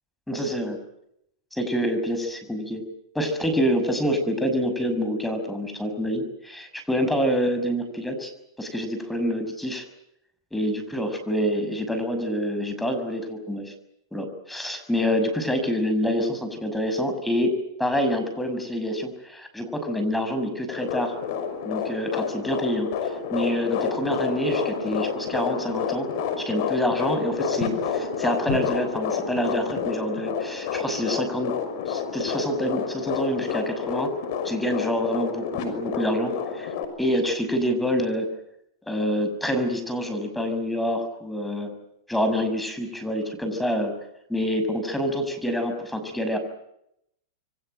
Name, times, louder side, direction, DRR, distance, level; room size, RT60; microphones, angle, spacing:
voice 1, 0.3-0.8 1.5-2.9 3.1-8.3 8.6-9.8 10.5-13.7 14.1-21.1 21.6-22.9 23.3-26.1 26.4-31.6 31.9-34.1 34.4-36.7 37.0-38.3 38.9-41.8 42.1-44.0 44.3-46.4, equal, 5° left, 7 dB, 6.2 m, -27 dB
sound 1, 20.7-36.9, left 6 dB, 55° left, 6.0 m, -29 dB
27.5 x 24.5 x 7.9 m, 0.79 s
hypercardioid pair, 120°, 2 cm